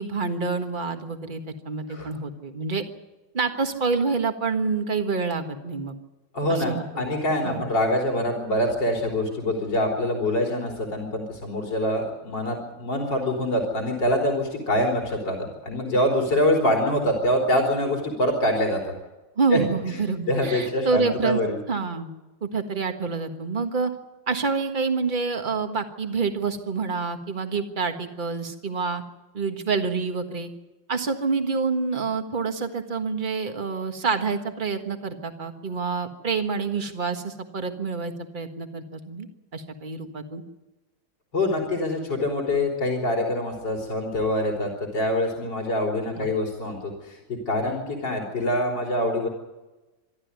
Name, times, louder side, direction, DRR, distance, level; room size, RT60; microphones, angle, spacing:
voice 1, 0.0-2.8 3.3-5.9 6.5-7.0 7.4-7.7 19.4-21.4 21.7-22.1 22.4-23.9 24.3-29.0 29.3-30.5 30.9-39.3 39.5-40.4 46.2-46.3, right 4 dB, 30° right, 6 dB, 1.6 m, -27 dB
voice 2, 6.3-18.8 19.5-19.6 19.9-20.0 20.3-21.6 41.3-49.3, left 1 dB, 75° left, 0 dB, 4.3 m, -25 dB
26.0 x 12.5 x 9.5 m, 1.1 s
omnidirectional pair, 2.0 m